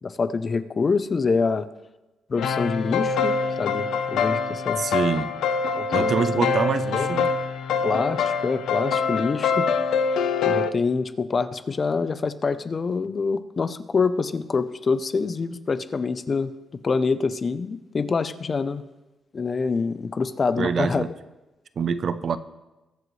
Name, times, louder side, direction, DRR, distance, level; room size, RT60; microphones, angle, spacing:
voice 1, 0.0-1.7 2.3-4.8 5.8-6.5 6.9-7.2 7.8-9.7 10.5-16.5 16.8-18.8 19.3-21.0, left 4 dB, 30° left, 13 dB, 0.5 m, -26 dB
sound 1, 2.3-10.7, left 5 dB, 85° left, 0.6 m, -24 dB
voice 2, 4.8-5.3 5.9-7.3 20.6-21.1 21.8-22.4, right 6 dB, 45° right, 13 dB, 0.5 m, -25 dB
21.5 x 8.0 x 3.2 m, 1.1 s
cardioid pair, 155°, 0 cm